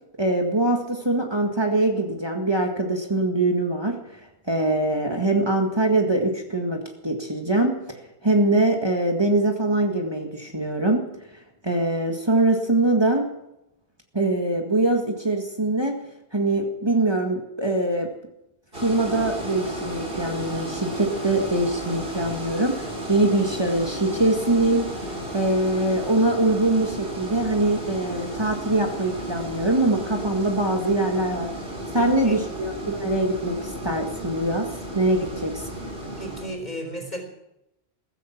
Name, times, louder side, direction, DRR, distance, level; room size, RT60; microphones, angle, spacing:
voice 1, 0.2-4.0 4.5-7.8 8.2-11.0 11.6-13.3 14.1-15.9 16.3-18.1 18.8-22.8 23.1-24.9 25.3-31.5 31.9-34.7 34.9-35.6, right 2 dB, 25° right, 2 dB, 1.9 m, -23 dB
sound 1, 18.7-36.5, right 1 dB, 55° right, 4.6 m, -34 dB
voice 2, 32.0-32.4 36.0-37.2, equal, 40° left, 4 dB, 4.3 m, -34 dB
15.5 x 15.0 x 6.0 m, 0.84 s
omnidirectional pair, 1.1 m